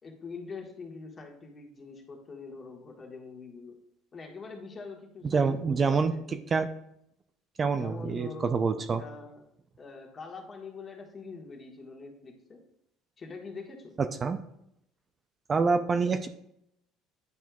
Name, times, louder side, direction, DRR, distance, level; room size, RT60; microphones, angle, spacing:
voice 1, 0.0-3.7 4.1-6.4 7.8-9.4 9.8-12.6 13.2-13.9, left 4 dB, 35° left, 2 dB, 1.4 m, -44 dB
voice 2, 5.3-6.1 6.5-6.7 7.6-9.0 14.0-14.4 15.5-16.3, right 5 dB, 35° right, 9 dB, 0.4 m, -26 dB
9.5 x 4.4 x 2.3 m, 0.76 s
supercardioid pair, 95°, 0 cm